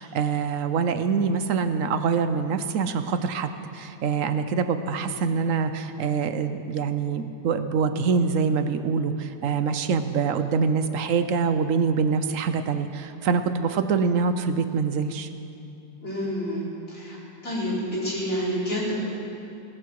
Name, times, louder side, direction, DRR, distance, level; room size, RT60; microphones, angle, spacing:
voice 1, 0.0-15.3, right 5 dB, 60° right, 9 dB, 0.9 m, -25 dB
voice 2, 16.0-16.6 16.9-17.2 17.4-18.9, equal, 35° left, -8 dB, 4.8 m, -28 dB
18.5 x 14.5 x 4.7 m, 2.7 s
omnidirectional pair, 1.9 m